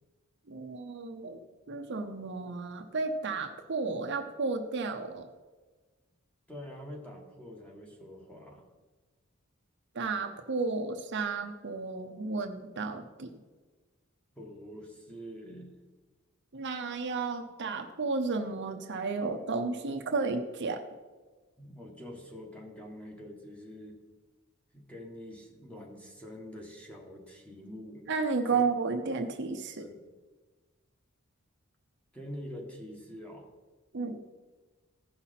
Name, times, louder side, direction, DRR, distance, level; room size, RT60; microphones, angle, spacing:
voice 1, 0.5-5.3 9.9-13.3 16.5-20.8 28.1-29.8 33.9-34.2, right 4 dB, 55° right, 5 dB, 0.8 m, -33 dB
voice 2, 6.5-8.7 14.3-15.7 21.6-24.0 24.7-28.1 28.5-28.6 29.8-30.0 32.1-33.5, equal, 5° left, 1 dB, 1.4 m, -45 dB
15.0 x 5.7 x 4.1 m, 1.3 s
head